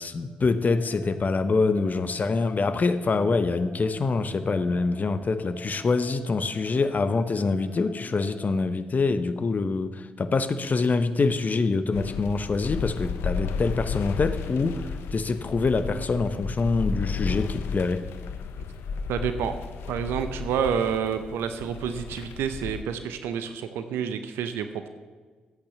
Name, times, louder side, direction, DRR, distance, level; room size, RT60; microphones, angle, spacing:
voice 1, 0.0-18.0, left 4 dB, 45° left, 11 dB, 1.0 m, -25 dB
sound 1, 0.7-8.5, equal, 10° right, 4.1 m, -51 dB
sound 2, 11.9-22.8, left 5 dB, 70° left, 0.8 m, -33 dB
voice 2, 19.1-19.5 19.9-24.9, right 7 dB, 75° right, 9 dB, 0.8 m, -29 dB
13.5 x 8.7 x 7.0 m, 1.4 s
hypercardioid pair, 40°, 4 cm